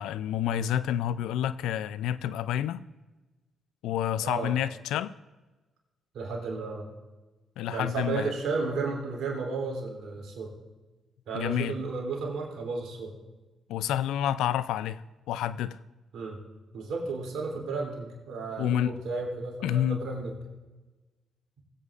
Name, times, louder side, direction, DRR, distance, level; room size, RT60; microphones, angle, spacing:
voice 1, 0.0-2.8 3.8-5.2 7.6-8.3 11.3-11.8 13.7-15.8 18.6-18.9 19.6-20.0, left 10 dB, 85° left, 0.3 m, -29 dB
voice 2, 4.2-4.6 6.1-6.9 7.7-10.5 11.3-13.1 16.1-16.4 16.7-20.3, right 4 dB, 75° right, 3.0 m, -33 dB
20.0 x 8.3 x 2.5 m
supercardioid pair, 60°, 0 cm